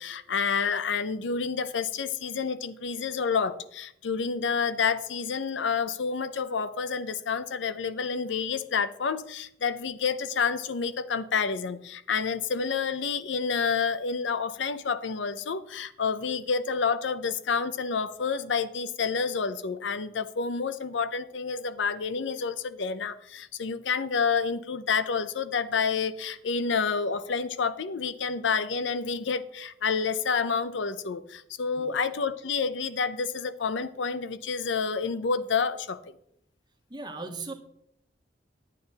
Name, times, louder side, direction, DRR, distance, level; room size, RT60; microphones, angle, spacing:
voice 1, 0.0-36.0, left 5 dB, 90° left, 13 dB, 0.6 m, -29 dB
voice 2, 36.9-37.5, right 3 dB, 25° right, 6 dB, 1.1 m, -38 dB
10.5 x 9.2 x 4.0 m, 0.73 s
head